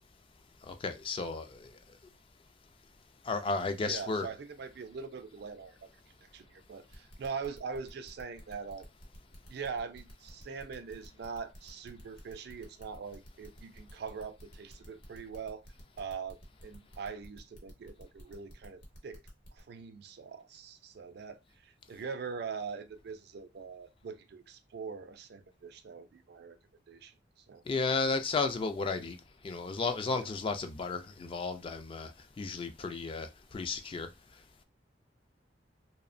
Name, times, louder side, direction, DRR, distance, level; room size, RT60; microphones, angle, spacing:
voice 1, 0.6-1.8 3.2-4.3 27.7-29.2 29.4-32.1 32.4-34.1, left 4 dB, 30° left, 0.3 m, -33 dB
voice 2, 3.8-5.9 6.2-8.9 9.5-15.6 16.0-19.2 19.5-21.4 21.6-26.6 26.9-27.1 27.5-27.6, right 5 dB, 60° right, 0.4 m, -42 dB
sound 1, 6.9-19.6, equal, 50° left, 0.9 m, -52 dB
2.7 x 2.0 x 2.5 m
head